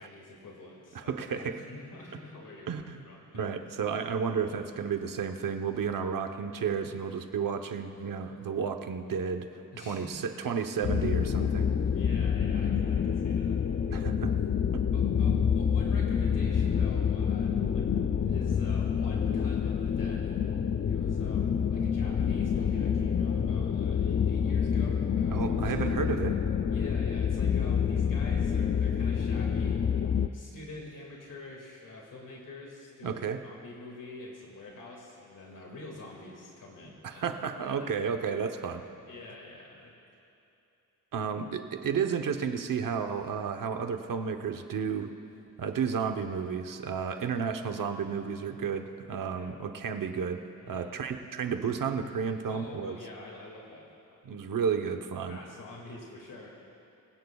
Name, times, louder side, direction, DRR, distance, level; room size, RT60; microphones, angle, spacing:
voice 1, 0.0-1.4 1.7-3.6 9.7-10.3 11.9-13.6 14.9-20.4 20.6-26.0 26.7-29.9 30.3-37.4 37.6-37.9 39.1-40.0 41.2-41.3 49.3-49.5 50.6-50.9 52.5-54.2 55.3-56.5, left 2 dB, 80° left, -2 dB, 2.2 m, -46 dB
voice 2, 0.9-1.6 2.7-3.0 3.3-9.5 9.8-11.7 13.9-14.3 14.7-14.8 25.3-26.3 33.0-33.4 37.0-38.8 41.1-45.1 45.6-50.4 50.7-53.0 54.2-55.4, right 6 dB, 85° right, 6 dB, 1.0 m, -32 dB
sound 1, 10.8-30.3, left 7 dB, 40° left, 0.4 m, -27 dB
23.5 x 16.5 x 2.4 m, 2.8 s
wide cardioid pair, 175°, 32 cm